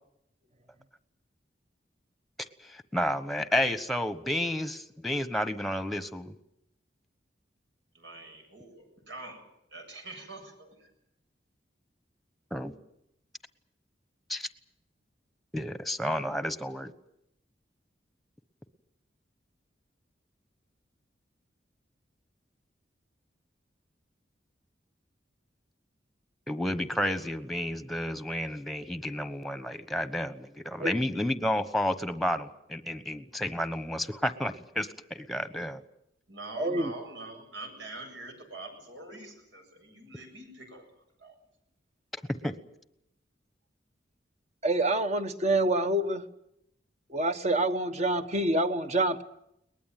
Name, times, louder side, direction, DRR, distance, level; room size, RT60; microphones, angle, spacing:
voice 1, 2.6-6.3 12.5-12.7 14.3-14.5 15.5-16.9 26.5-35.8 42.4-42.5, left 1 dB, ahead, 11 dB, 1.2 m, -31 dB
voice 2, 7.9-9.4 9.7-10.9 36.3-40.8 41.2-41.3, right 2 dB, 85° right, 5 dB, 7.7 m, -44 dB
voice 3, 36.6-36.9 44.6-46.2 47.1-49.2, right 1 dB, 40° right, 9 dB, 1.3 m, -27 dB
22.5 x 20.0 x 9.3 m, 0.79 s
head